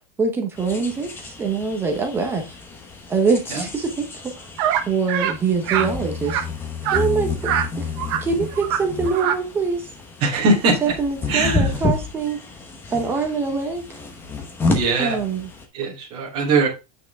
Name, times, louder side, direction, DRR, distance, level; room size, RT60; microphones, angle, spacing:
voice 1, 0.2-2.6 3.1-4.1 4.4-4.5 4.8-6.4 6.9-7.3 7.8-7.9 8.2-9.9 10.8-12.4 12.9-13.8 15.0-15.5, right 5 dB, 10° right, 4 dB, 1.0 m, -23 dB
sound 1, 0.6-15.6, left 3 dB, 10° left, 0.9 m, -30 dB
sound 2, 4.6-4.8 5.1-5.3 5.7-5.9 6.3-6.4 6.8-7.0 7.4-7.7 8.0-8.2 8.5-8.8 9.1-9.4, right 10 dB, 45° right, 1.2 m, -23 dB
voice 2, 10.2-10.9 11.3-11.7 14.7-15.2 15.7-16.7, right 3 dB, 25° right, -4 dB, 3.1 m, -21 dB
8.3 x 6.0 x 3.6 m, 0.27 s
supercardioid pair, 175°, 19 cm